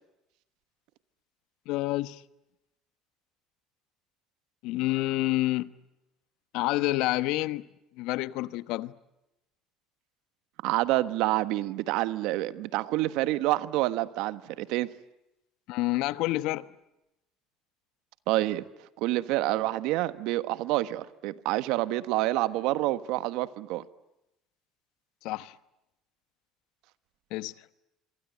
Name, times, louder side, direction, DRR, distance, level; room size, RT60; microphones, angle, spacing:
voice 1, 1.7-2.2 4.6-5.7 6.5-7.6 8.0-8.9 15.7-16.7 25.2-25.5 27.3-27.5, left 18 dB, 75° left, 1.1 m, -28 dB
voice 2, 10.6-14.9 18.3-18.6 19.0-23.8, right 17 dB, 75° right, 1.3 m, -28 dB
26.5 x 24.0 x 9.3 m
supercardioid pair, 85°, 0 cm